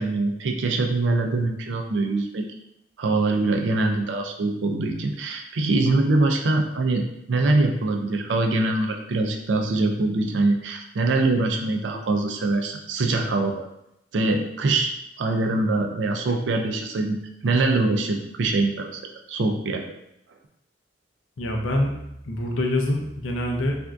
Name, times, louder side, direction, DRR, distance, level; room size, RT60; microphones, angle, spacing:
voice 1, 0.0-2.4 3.0-13.7 14.1-14.9 15.2-17.2 17.4-19.0 19.3-19.9, right 2 dB, 65° right, 3 dB, 0.4 m, -23 dB
voice 2, 21.4-21.9 22.2-23.8, left 1 dB, 85° left, 1 dB, 0.5 m, -25 dB
3.4 x 2.5 x 2.2 m, 0.80 s
head